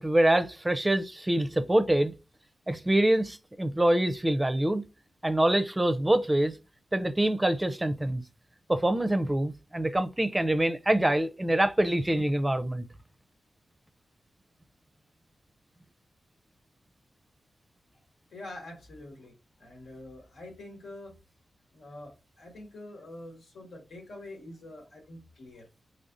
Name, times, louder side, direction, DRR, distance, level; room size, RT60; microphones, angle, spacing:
voice 1, 0.0-2.1 2.7-4.8 5.2-6.5 6.9-8.2 8.7-12.9, right 1 dB, 15° right, 0.5 m, -25 dB
voice 2, 18.3-19.3 19.6-21.1 21.7-25.7, left 1 dB, 85° left, 1.4 m, -45 dB
4.0 x 3.2 x 2.5 m
cardioid pair, 75°, 0 cm